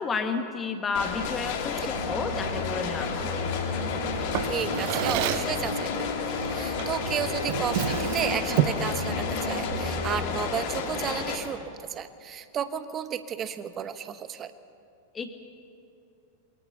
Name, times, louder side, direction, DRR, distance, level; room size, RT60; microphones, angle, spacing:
voice 1, 0.0-3.4 15.1-15.3, left 4 dB, 20° left, 5 dB, 2.0 m, -31 dB
sound 1, 0.9-11.4, left 6 dB, 50° left, 3.1 m, -32 dB
sound 2, 1.9-10.2, left 1 dB, 85° right, 3.0 m, -34 dB
Drawer open or close, 4.3-5.6 6.8-7.0 7.4-8.9, right 13 dB, 45° right, 0.9 m, -29 dB
voice 2, 4.4-14.5, right 8 dB, 25° right, 12 dB, 1.2 m, -33 dB
28.0 x 22.5 x 5.6 m, 2.6 s
figure-of-eight pair, 90°, 0 cm